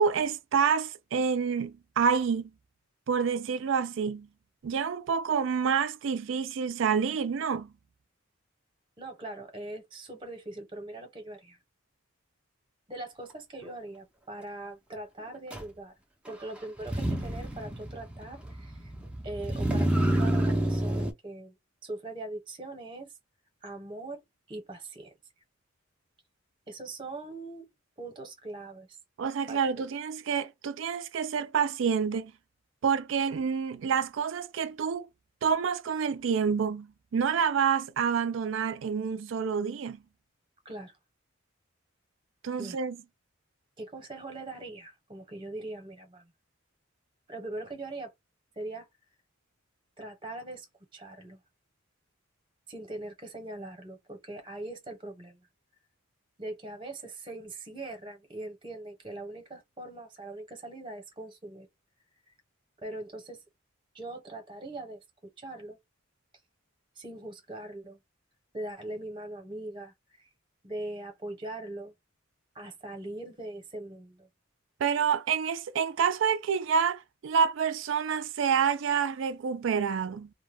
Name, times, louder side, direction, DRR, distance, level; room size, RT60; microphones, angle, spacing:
voice 1, 0.0-2.5 3.1-4.3 4.6-7.7 29.2-32.3 32.8-35.1 35.4-40.0 42.4-43.0 74.8-80.3, right 6 dB, 65° right, 0.4 m, -28 dB
voice 2, 9.0-11.6 12.9-15.9 16.3-18.9 19.2-21.6 21.8-23.1 23.6-24.2 24.5-25.1 26.7-27.7 28.0-29.0 29.5-29.9 40.6-40.9 42.6-42.8 43.8-46.3 47.3-48.1 48.6-48.9 50.0-50.7 50.9-51.4 52.7-55.4 56.4-61.7 62.8-63.4 63.9-65.0 65.4-65.8 66.9-68.0 68.5-70.3 70.6-71.9 72.5-74.3, right 2 dB, 25° right, 0.9 m, -41 dB
Motor vehicle (road), 15.5-15.6 16.8-21.1, right 1 dB, 5° right, 0.5 m, -29 dB
2.2 x 2.1 x 3.3 m
head